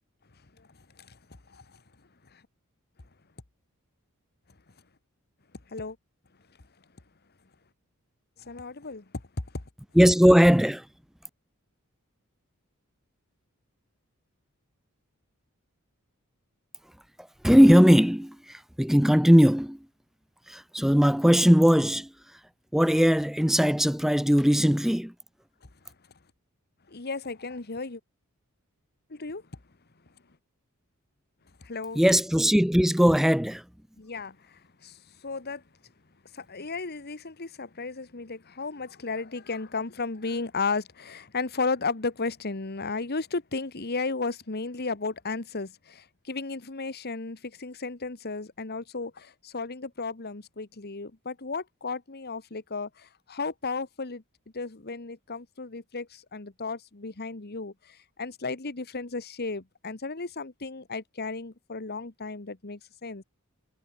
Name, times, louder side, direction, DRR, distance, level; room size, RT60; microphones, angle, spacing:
voice 1, 8.4-9.0 26.9-28.0 29.1-29.4 31.6-32.0 34.0-35.0 35.2-35.6 36.3-54.2 54.5-63.2, left 4 dB, 45° left, 1.4 m, -34 dB
voice 2, 9.9-10.9 17.2-19.9 20.5-22.4 22.7-25.1 31.9-33.6, equal, ahead, 0.6 m, -20 dB
head